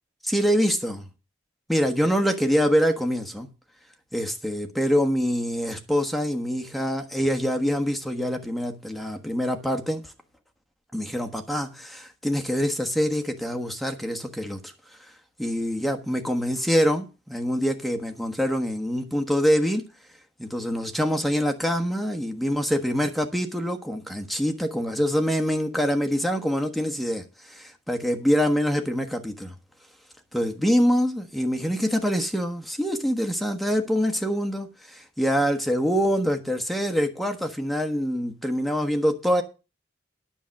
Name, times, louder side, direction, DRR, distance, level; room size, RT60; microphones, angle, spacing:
voice 1, 0.2-1.0 1.7-3.5 4.1-10.0 10.9-14.7 15.4-19.9 20.4-29.5 30.3-39.4, equal, ahead, 1.3 m, -25 dB
10.0 x 7.4 x 6.4 m
head